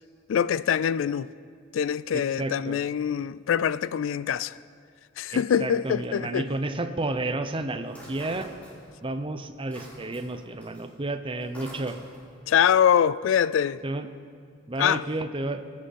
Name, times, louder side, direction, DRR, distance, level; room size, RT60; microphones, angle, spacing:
voice 1, 0.3-1.3 1.7-4.6 5.2-6.5 12.5-13.8 14.8-15.0, left 8 dB, 70° left, 0.3 m, -24 dB
voice 2, 2.1-2.8 5.3-8.5 9.0-12.0 13.8-14.1 14.7-15.6, right 2 dB, 25° right, 0.6 m, -31 dB
sound 1, 7.9-9.1 9.4-12.4, equal, 10° left, 3.8 m, -46 dB
23.5 x 9.6 x 4.2 m
head